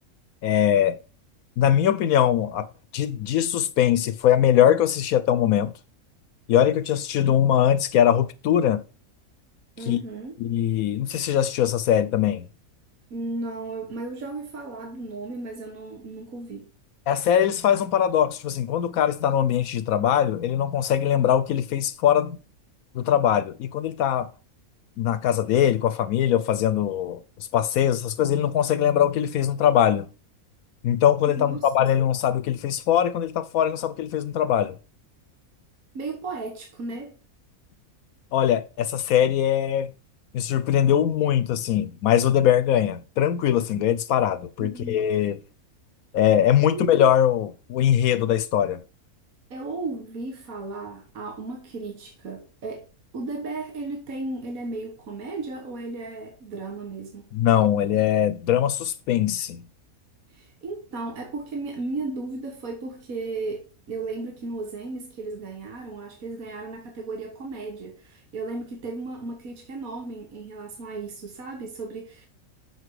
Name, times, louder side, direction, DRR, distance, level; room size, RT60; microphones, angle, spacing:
voice 1, 0.4-1.0 1.6-2.7 2.9-5.7 6.5-8.8 9.8-10.0 10.4-12.5 17.1-22.4 22.9-24.3 25.0-27.2 27.5-30.1 30.8-34.8 38.3-39.9 40.3-45.4 46.1-48.8 57.3-59.6, left 10 dB, 75° left, 1.0 m, -21 dB
voice 2, 9.8-10.3 13.1-16.7 31.3-31.9 35.9-37.2 44.6-45.0 46.6-47.0 49.5-52.9 53.1-57.3 60.3-72.3, right 3 dB, 70° right, 1.9 m, -35 dB
8.0 x 6.0 x 4.7 m
omnidirectional pair, 1.5 m